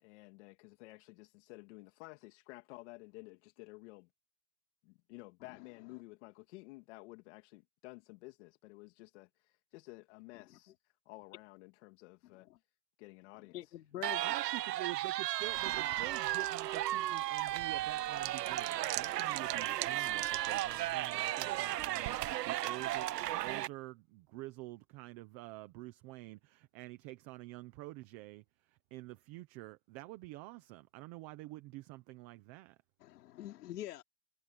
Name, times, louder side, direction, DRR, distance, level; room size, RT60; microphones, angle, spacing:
voice 1, 0.0-4.1 4.8-10.7 11.1-12.5 13.0-13.7, left 22 dB, 45° left, 2.4 m, -53 dB
voice 2, 12.2-12.6 13.5-14.3 33.0-34.0, left 13 dB, 75° left, 3.1 m, -46 dB
sound 1, 14.0-23.7, right 14 dB, 85° right, 1.1 m, -35 dB
voice 3, 14.2-32.8, right 19 dB, 20° right, 0.5 m, -48 dB
sound 2, 15.4-23.5, right 21 dB, 40° right, 1.4 m, -47 dB
supercardioid pair, 160°, 47 cm